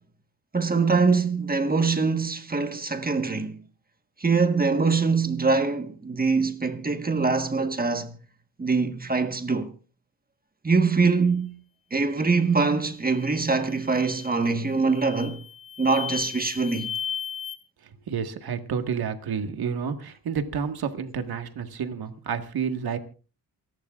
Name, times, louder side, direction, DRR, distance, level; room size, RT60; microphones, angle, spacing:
voice 1, 0.5-3.5 4.2-8.2 8.6-9.7 10.6-11.6 11.9-15.4 15.8-16.9, right 4 dB, 25° right, 1.4 m, -23 dB
sound 1, 13.1-13.4 13.9-14.4 14.9-17.6, left 8 dB, 60° left, 1.8 m, -35 dB
voice 2, 17.8-23.0, right 6 dB, 70° right, 1.8 m, -30 dB
27.5 x 11.5 x 2.5 m
cardioid pair, 110°, 38 cm